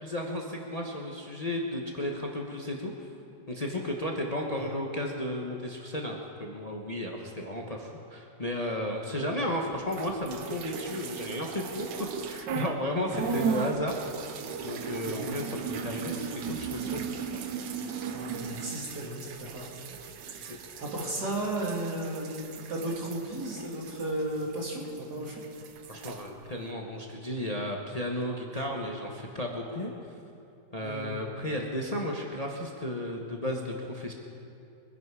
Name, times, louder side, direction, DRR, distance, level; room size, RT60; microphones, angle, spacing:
voice 1, 0.0-2.9 3.5-14.4 14.6-17.2 20.5-20.6 25.9-29.9 30.7-34.1, left 1 dB, 25° left, 0 dB, 1.1 m, -34 dB
sound 1, 9.9-12.8 13.1-25.0 25.3-26.2, right 6 dB, 85° right, 1.6 m, -37 dB
voice 2, 14.8-15.3 18.1-19.7 20.4-25.3 28.5-28.6 30.8-31.2, right 1 dB, 65° right, -3 dB, 3.3 m, -35 dB
23.0 x 10.5 x 4.8 m, 2.7 s
omnidirectional pair, 1.9 m